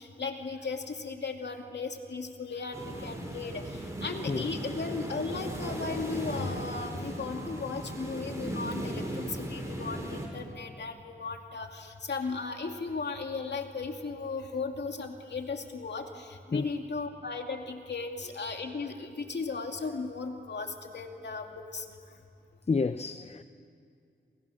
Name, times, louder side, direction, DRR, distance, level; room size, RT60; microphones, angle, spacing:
voice 1, 0.0-21.9, left 4 dB, 65° left, 2.6 m, -36 dB
sound 1, 2.7-10.3, right 1 dB, 15° right, 6.6 m, -37 dB
voice 2, 22.7-23.4, left 4 dB, 35° left, 0.7 m, -29 dB
28.5 x 28.0 x 6.5 m
cardioid pair, 75°, 19 cm